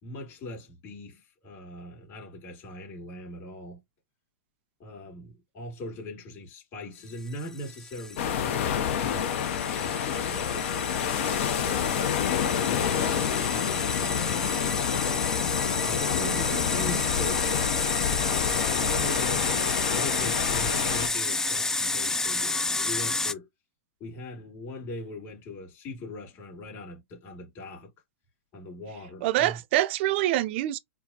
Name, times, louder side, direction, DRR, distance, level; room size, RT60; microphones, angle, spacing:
voice 1, 0.0-3.8 4.8-12.2 12.6-14.8 15.8-16.1 16.5-17.9 18.5-23.5 24.0-27.9 28.5-29.6, left 1 dB, 40° left, 2.5 m, -41 dB
sound 1, 7.3-23.3, left 3 dB, 5° left, 0.3 m, -31 dB
sound 2, 8.2-21.1, left 9 dB, 60° left, 0.8 m, -28 dB
voice 2, 16.2-16.7 29.2-30.8, right 14 dB, 50° right, 0.6 m, -26 dB
4.5 x 2.2 x 2.8 m
hypercardioid pair, 115°, 8 cm